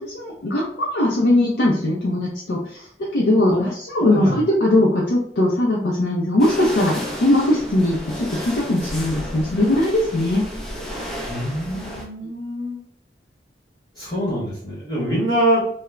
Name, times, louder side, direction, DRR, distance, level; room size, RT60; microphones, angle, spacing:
voice 1, 0.0-10.5 12.2-12.3, left 1 dB, 70° left, -4 dB, 0.5 m, -20 dB
voice 2, 4.0-4.3 11.3-12.8 14.0-15.6, equal, 20° left, -8 dB, 0.9 m, -24 dB
sound 1, 6.4-12.1, equal, ahead, 0.4 m, -32 dB
2.3 x 2.0 x 3.1 m, 0.64 s
head